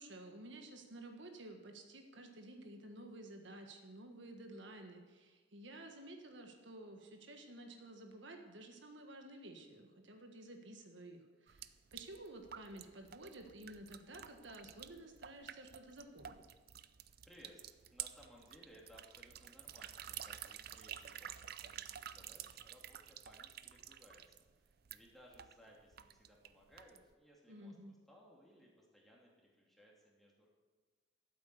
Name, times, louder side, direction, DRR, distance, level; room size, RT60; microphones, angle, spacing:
voice 1, 0.0-16.4 27.5-27.9, right 1 dB, 70° right, 4 dB, 1.6 m, -53 dB
sound 1, 11.5-27.1, right 10 dB, 50° right, 0.6 m, -51 dB
voice 2, 17.2-17.6 17.9-30.5, equal, ahead, -3 dB, 3.0 m, -63 dB
14.0 x 8.4 x 7.9 m, 1.4 s
head